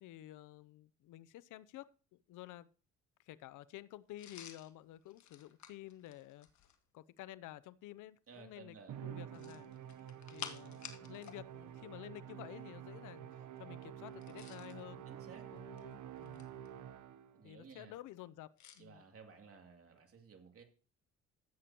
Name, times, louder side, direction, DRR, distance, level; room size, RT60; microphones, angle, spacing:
voice 1, 0.0-2.7 3.2-6.5 6.9-8.8 9.0-9.7 10.3-15.0 15.5-16.4 17.4-19.0, left 14 dB, 85° left, 0.6 m, -52 dB
sound 1, 4.2-6.8 9.3-11.4 11.7-11.9 14.1-14.8 15.6-16.7 18.6-18.8, left 9 dB, 70° left, 1.5 m, -52 dB
voice 2, 8.3-9.0 15.1-15.5 17.3-17.9 18.8-20.6, right 5 dB, 50° right, 2.8 m, -56 dB
Musical instrument, 8.9-17.4, right 10 dB, 70° right, 1.0 m, -49 dB
15.5 x 8.4 x 2.9 m
cardioid pair, 90°, 30 cm